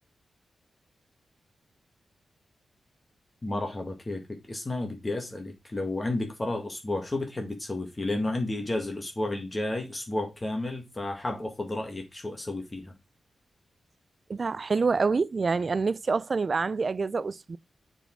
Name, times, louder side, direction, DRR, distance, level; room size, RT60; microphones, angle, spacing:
voice 1, 3.4-12.9, left 2 dB, 25° left, 1.7 m, -32 dB
voice 2, 14.3-17.6, right 4 dB, 45° right, 0.3 m, -27 dB
6.9 x 4.3 x 4.5 m
cardioid pair, 85°, 0 cm